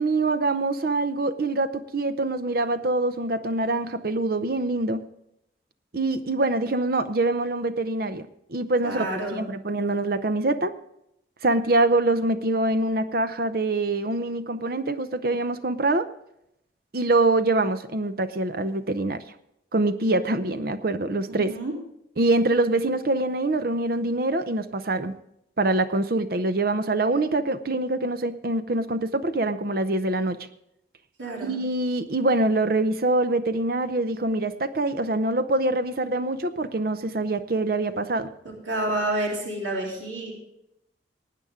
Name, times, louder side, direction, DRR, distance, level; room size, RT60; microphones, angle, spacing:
voice 1, 0.0-5.0 5.9-10.7 11.4-16.1 16.9-19.2 19.7-21.5 22.2-25.2 25.6-30.4 31.4-38.3, right 2 dB, 50° right, 10 dB, 0.7 m, -24 dB
voice 2, 8.8-9.4 21.3-21.7 31.2-31.5 38.7-40.3, right 1 dB, 85° right, -1 dB, 3.3 m, -29 dB
19.5 x 9.3 x 3.7 m, 0.79 s
head